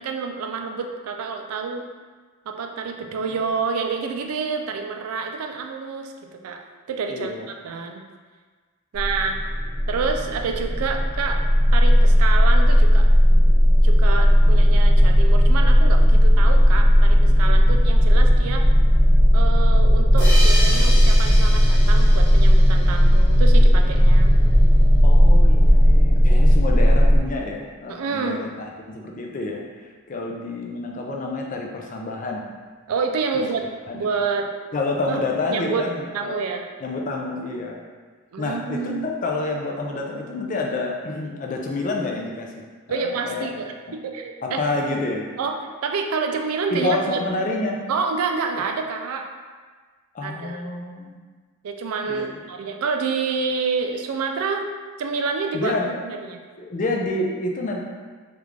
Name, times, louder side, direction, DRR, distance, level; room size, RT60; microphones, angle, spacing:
voice 1, 0.0-1.9 2.5-7.3 7.6-8.1 8.9-9.4 9.9-11.4 11.7-13.1 13.8-18.7 19.3-24.3 27.9-28.4 32.9-33.7 33.9-34.5 35.1-35.2 35.5-35.9 36.1-36.7 38.3-39.1 42.9-44.6 45.4-45.6 45.8-47.2 47.9-49.3 50.2-50.6 51.6-54.7 55.0-56.4, right 5 dB, 80° right, 4 dB, 0.4 m, -28 dB
voice 2, 7.1-7.5 25.0-32.4 33.9-34.0 34.7-36.4 36.8-37.8 38.4-43.5 43.9-44.0 44.4-45.3 46.7-47.8 50.1-51.2 52.0-52.4 55.5-56.0 56.6-57.8, left 2 dB, 35° left, 0 dB, 0.4 m, -28 dB
sound 1, 9.0-27.2, equal, 30° right, 0.7 m, -15 dB
sound 2, 20.2-23.5, equal, 10° left, 1.0 m, -30 dB
3.4 x 2.4 x 3.2 m, 1.5 s
head